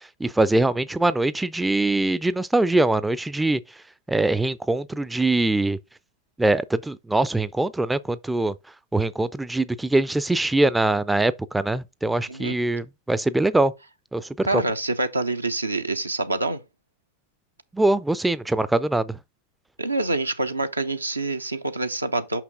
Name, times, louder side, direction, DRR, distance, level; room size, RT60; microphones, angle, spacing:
voice 1, 0.0-3.6 4.1-5.8 6.4-8.5 8.9-13.7 14.1-14.5 17.7-19.2, right 2 dB, 5° right, 0.4 m, -23 dB
voice 2, 14.4-16.6 19.8-22.4, right 2 dB, 80° right, 0.6 m, -26 dB
6.0 x 5.7 x 3.6 m
figure-of-eight pair, 90°, 0 cm